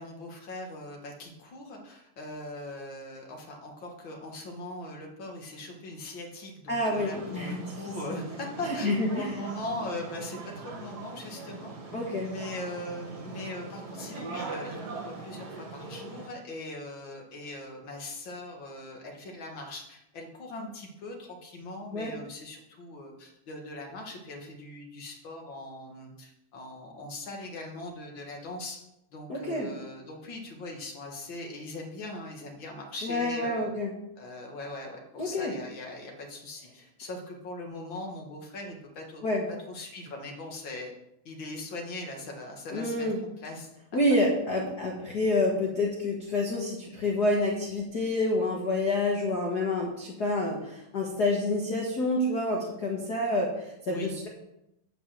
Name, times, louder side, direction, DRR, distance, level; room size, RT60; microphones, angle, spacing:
voice 1, 0.0-11.9 12.2-28.8 29.1-33.7 34.2-39.2 39.5-40.9 41.2-44.0 44.5-44.8 53.9-54.1, left 2 dB, 50° left, 1 dB, 1.4 m, -40 dB
voice 2, 6.7-7.6 8.7-9.3 11.9-12.3 21.9-22.1 29.3-29.7 33.0-33.9 35.2-35.5 39.2-39.4 42.7-43.2 43.9-54.3, left 2 dB, 85° left, -2 dB, 0.8 m, -28 dB
sound 1, 7.0-16.3, right 3 dB, 50° right, 2.2 m, -41 dB
10.5 x 5.4 x 7.4 m, 0.85 s
omnidirectional pair, 4.4 m